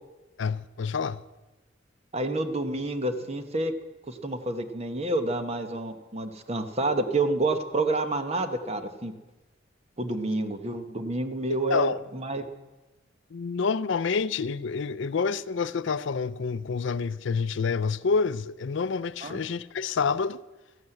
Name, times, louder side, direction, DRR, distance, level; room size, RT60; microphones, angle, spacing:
voice 1, 0.4-1.2 11.7-12.0 13.3-20.4, left 5 dB, 65° left, 0.5 m, -28 dB
voice 2, 2.1-3.7 4.1-9.1 10.0-12.4 19.2-19.4, right 2 dB, 30° right, 1.1 m, -29 dB
14.5 x 12.0 x 7.9 m
head